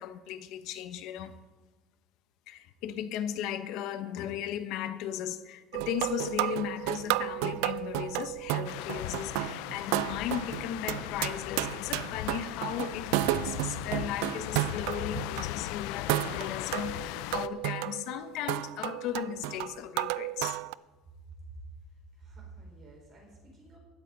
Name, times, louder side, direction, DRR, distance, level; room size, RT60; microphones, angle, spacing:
voice 1, 0.0-1.4 2.5-20.6, left 10 dB, 55° left, 0.9 m, -36 dB
sound 1, 5.7-15.5 16.1-20.7, right 17 dB, 85° right, 0.4 m, -32 dB
sound 2, 8.6-17.5, left 15 dB, 75° left, 0.4 m, -38 dB
voice 2, 21.8-23.8, right 3 dB, 30° right, 4.8 m, -50 dB
16.0 x 12.5 x 4.0 m
cardioid pair, 180°, 0 cm